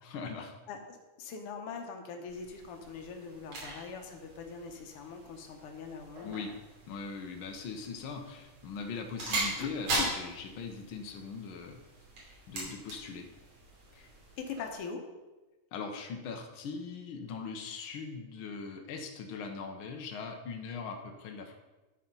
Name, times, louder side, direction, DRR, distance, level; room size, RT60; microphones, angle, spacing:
voice 1, 0.0-0.5 6.2-6.5 6.9-11.8 12.5-13.3 15.7-21.6, left 5 dB, 85° left, 3 dB, 1.1 m, -40 dB
voice 2, 0.7-6.4 8.3-8.4 9.6-9.7 9.9-10.1 13.9-14.1 14.4-15.0, left 5 dB, 65° left, 4 dB, 1.5 m, -42 dB
sound 1, 2.3-14.8, right 2 dB, 70° right, 4.2 m, -40 dB
12.0 x 4.3 x 5.4 m, 1.1 s
omnidirectional pair, 3.5 m